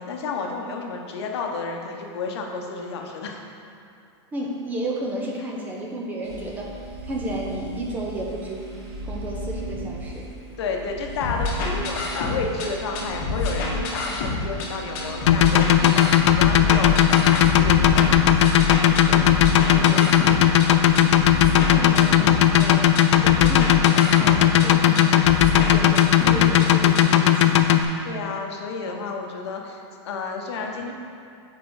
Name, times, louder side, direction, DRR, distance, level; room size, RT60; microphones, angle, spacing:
voice 1, 0.0-3.5 10.6-18.2 21.7-22.1 28.0-30.9, left 4 dB, 65° left, 2 dB, 0.8 m, -31 dB
voice 2, 4.3-6.7 7.0-8.7 9.0-10.3 19.1-21.1 21.7-22.8 23.2-27.6, right 1 dB, 10° right, -2 dB, 0.5 m, -33 dB
There is a little man in the machine, 6.2-22.9, right 2 dB, 80° right, 1.3 m, -36 dB
sound 1, 11.2-12.7 12.9-14.7 15.0-20.7 21.0-22.7 23.0-24.7 25.0-26.7 27.0-27.1, left 3 dB, 40° left, 1.0 m, -27 dB
sound 2, 15.3-27.8, left 11 dB, 85° left, 0.4 m, -16 dB
5.1 x 4.4 x 4.7 m, 2.5 s
supercardioid pair, 165°, 15 cm